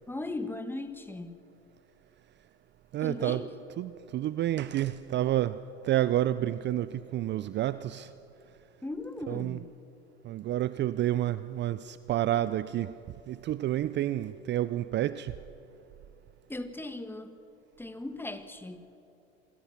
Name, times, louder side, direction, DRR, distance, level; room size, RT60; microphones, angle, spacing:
voice 1, 0.1-1.4 3.0-3.5 8.8-9.7 16.5-17.4 17.8-18.9, left 2 dB, 5° left, 9 dB, 1.6 m, -38 dB
voice 2, 2.9-3.4 3.8-8.1 9.3-9.6 10.2-12.9 13.3-15.3, right 13 dB, 35° right, 15 dB, 0.6 m, -29 dB
28.0 x 22.0 x 6.0 m, 2.9 s
hypercardioid pair, 85°, 33 cm